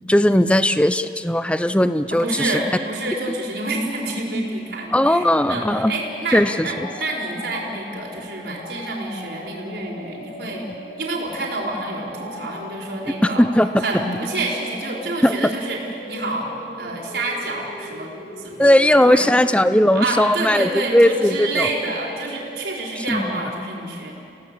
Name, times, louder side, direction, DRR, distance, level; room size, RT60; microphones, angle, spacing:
voice 1, 0.1-2.5 3.3-3.4 4.9-5.9 6.3-6.9 13.2-13.7 15.2-15.3 18.6-21.7 23.0-23.3, left 1 dB, 5° left, 12 dB, 0.6 m, -17 dB
voice 2, 2.2-10.7 11.0-13.5 13.8-15.8 16.1-16.5 16.8-18.1 18.4-18.8 19.0-19.3 19.9-24.1, right 2 dB, 70° right, -2 dB, 4.6 m, -28 dB
sound 1, 5.3-23.4, equal, 75° left, 7.0 m, -39 dB
29.5 x 17.0 x 8.3 m, 2.6 s
head